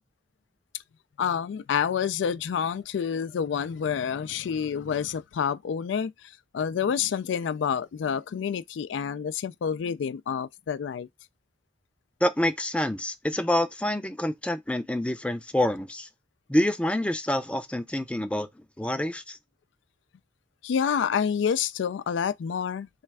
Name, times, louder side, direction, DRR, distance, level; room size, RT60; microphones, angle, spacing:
voice 1, 1.2-11.1 20.6-22.9, left 7 dB, 80° left, 0.3 m, -28 dB
voice 2, 12.2-16.1 16.5-18.5 18.8-19.4, left 1 dB, 5° left, 0.4 m, -27 dB
3.3 x 3.2 x 4.6 m
head